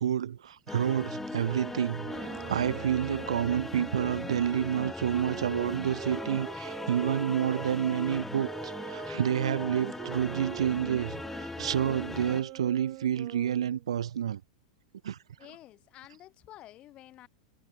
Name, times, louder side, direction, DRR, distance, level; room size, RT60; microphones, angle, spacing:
voice 1, 0.0-14.4 15.0-15.2, right 9 dB, 65° right, 1.7 m, -29 dB
sound 1, 0.7-12.4, left 2 dB, 5° left, 7.6 m, -39 dB
sound 2, 1.9-7.7 8.4-13.9, right 25 dB, 40° right, 5.1 m, -44 dB
voice 2, 15.4-17.3, left 14 dB, 35° left, 6.5 m, -50 dB
figure-of-eight pair, 95°, 3 cm